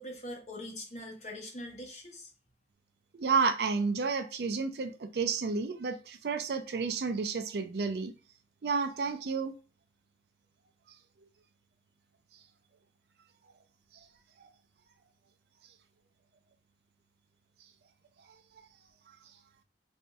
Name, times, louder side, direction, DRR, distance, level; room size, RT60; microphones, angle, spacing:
voice 1, 0.0-2.3, left 1 dB, 40° left, 0.9 m, -42 dB
voice 2, 3.1-8.1 8.6-9.5, right 5 dB, 65° right, 0.4 m, -31 dB
4.2 x 2.6 x 2.3 m
head